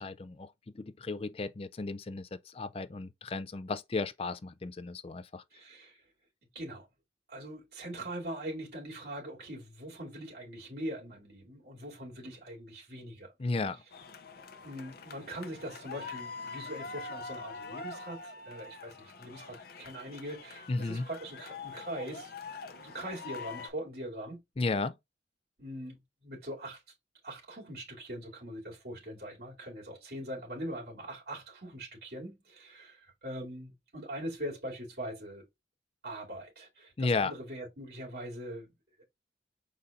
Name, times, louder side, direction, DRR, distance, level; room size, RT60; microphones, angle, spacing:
voice 1, 0.0-5.4 13.4-13.8 20.7-21.1 24.6-24.9 37.0-37.3, left 3 dB, 30° left, 0.4 m, -34 dB
voice 2, 5.5-6.0 6.5-6.9 7.3-13.3 14.6-22.3 22.7-24.4 25.6-26.8 27.2-35.4 36.0-38.7 39.0-39.1, right 1 dB, 55° right, 2.6 m, -42 dB
sound 1, 13.9-23.7, left 4 dB, 55° left, 0.7 m, -44 dB
5.3 x 4.2 x 2.4 m
head